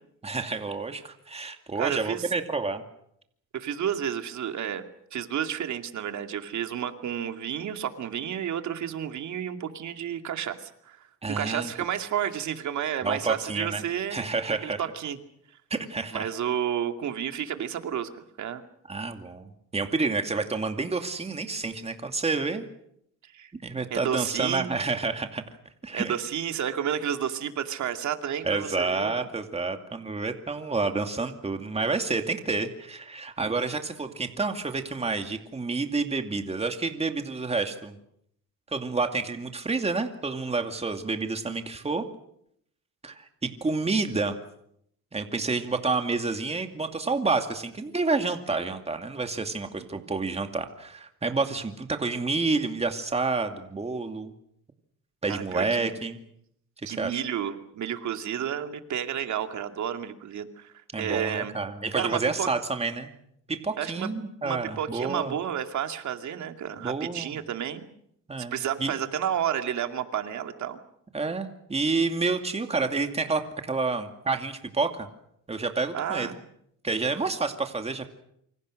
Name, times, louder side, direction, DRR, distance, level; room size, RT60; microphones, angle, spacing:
voice 1, 0.2-2.8 11.2-11.7 13.0-13.8 14.1-14.8 15.7-16.3 18.9-22.7 23.6-25.4 25.8-26.2 28.4-38.0 38.7-42.1 43.0-44.4 45.1-54.3 55.2-56.2 56.9-57.2 60.9-63.1 63.5-65.3 66.8-67.3 68.3-69.0 71.1-75.1 75.5-76.3 76.8-78.1, right 3 dB, 20° right, 6 dB, 2.4 m, -29 dB
voice 2, 1.8-2.3 3.5-4.8 5.1-11.0 11.3-15.2 16.1-18.6 23.2-23.5 23.9-24.8 25.9-29.2 49.9-50.1 55.3-55.9 56.9-60.7 61.0-61.5 61.9-62.5 63.8-64.1 64.4-67.9 68.5-70.8 75.9-76.3, right 9 dB, 65° right, 7 dB, 2.5 m, -31 dB
27.5 x 25.5 x 6.5 m, 0.74 s
cardioid pair, 120°, 32 cm